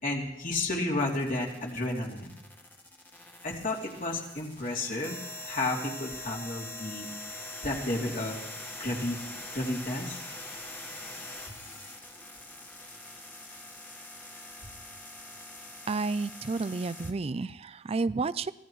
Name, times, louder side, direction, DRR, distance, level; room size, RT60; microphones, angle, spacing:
voice 1, 0.0-2.3 3.4-7.1 7.6-8.4 8.8-9.2 9.5-10.2, left 2 dB, 50° left, -1 dB, 2.9 m, -32 dB
sound 1, 1.0-17.1, left 2 dB, 10° left, 1.6 m, -43 dB
voice 2, 15.9-18.5, right 3 dB, 35° right, 16 dB, 0.4 m, -31 dB
24.0 x 16.5 x 3.1 m, 0.95 s
head